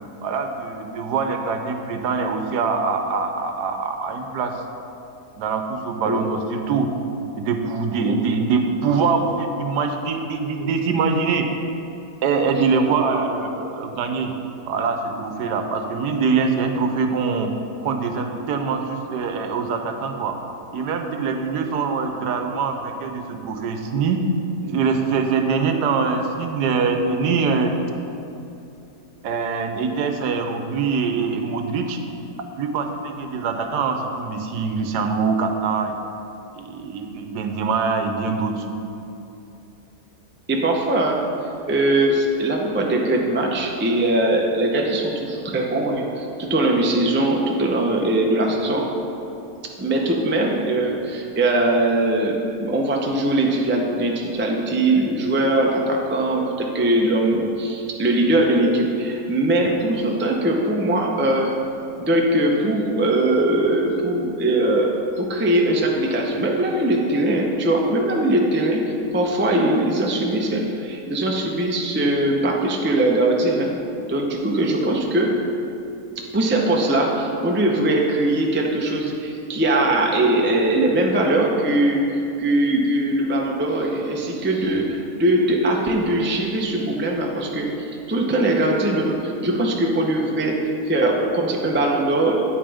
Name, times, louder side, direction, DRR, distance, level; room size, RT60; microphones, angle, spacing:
voice 1, 0.2-4.5 5.4-6.9 7.4-11.5 12.2-14.3 14.7-17.5 17.8-20.4 20.7-24.2 24.6-27.7 29.2-32.0 32.6-35.9 36.5-38.7, right 5 dB, 80° right, 5 dB, 1.3 m, -23 dB
voice 2, 40.5-41.2 41.6-48.9 49.8-61.5 62.0-64.9 65.2-68.8 69.1-73.7 74.0-75.4 76.2-92.4, right 1 dB, 15° right, 0 dB, 0.3 m, -21 dB
9.2 x 8.8 x 3.5 m, 2.8 s
omnidirectional pair, 1.8 m